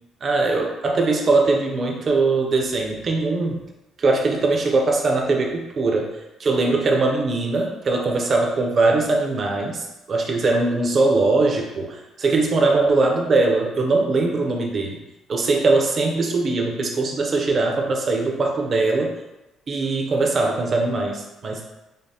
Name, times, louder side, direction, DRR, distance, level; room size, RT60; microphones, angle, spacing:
voice 1, 0.2-3.6 4.0-6.1 6.4-15.0 15.3-19.1 19.7-21.6, right 3 dB, 30° right, 1 dB, 0.5 m, -21 dB
5.0 x 2.0 x 2.7 m, 1.0 s
cardioid pair, 170°, 0 cm